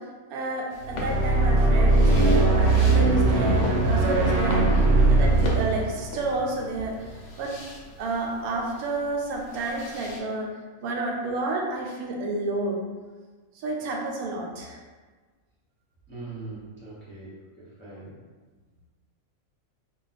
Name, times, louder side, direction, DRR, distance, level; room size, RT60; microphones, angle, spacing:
voice 1, 0.0-7.5 8.0-10.5 10.8-12.9 13.5-14.8, right 2 dB, 90° right, 0 dB, 1.1 m, -30 dB
sound 1, 0.7-10.2, left 2 dB, 65° left, 0.7 m, -40 dB
sound 2, 0.8-7.2, right 2 dB, 60° right, 0.7 m, -20 dB
voice 2, 16.1-17.3 17.6-18.1, right 3 dB, 15° left, -9 dB, 0.5 m, -41 dB
2.4 x 2.2 x 3.9 m, 1.4 s
omnidirectional pair, 1.5 m